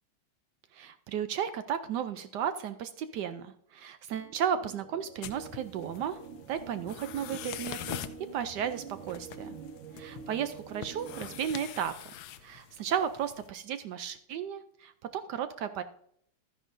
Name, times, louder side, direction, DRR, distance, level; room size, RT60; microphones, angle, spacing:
voice 1, 0.7-6.2 6.5-8.0 8.3-9.6 10.0-12.0 12.4-15.8, right 8 dB, 70° right, 10 dB, 1.1 m, -34 dB
sound 1, 4.1-11.5, right 7 dB, 90° right, 1.5 m, -47 dB
sound 2, 5.2-13.5, left 11 dB, 85° left, 1.4 m, -44 dB
12.5 x 9.9 x 2.6 m, 0.67 s
omnidirectional pair, 2.1 m